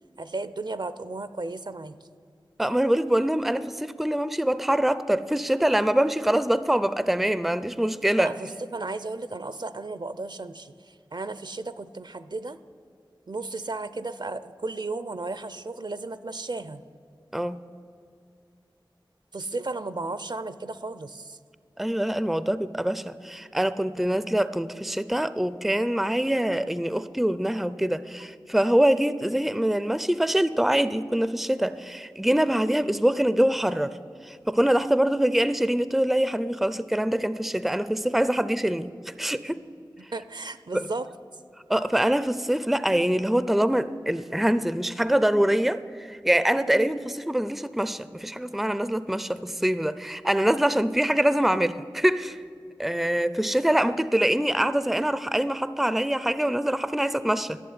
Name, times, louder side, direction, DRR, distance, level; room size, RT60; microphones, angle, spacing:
voice 1, 0.1-2.0 8.2-12.6 13.3-16.8 19.3-21.4 40.0-41.1, right 3 dB, 55° right, 14 dB, 0.5 m, -34 dB
voice 2, 2.6-8.3 17.3-17.6 21.8-33.9 34.3-39.6 40.7-40.8 41.7-45.8 46.1-52.4 52.8-57.6, right 1 dB, ahead, 14 dB, 0.4 m, -24 dB
11.5 x 7.1 x 9.5 m, 2.3 s
wide cardioid pair, 40°, 9 cm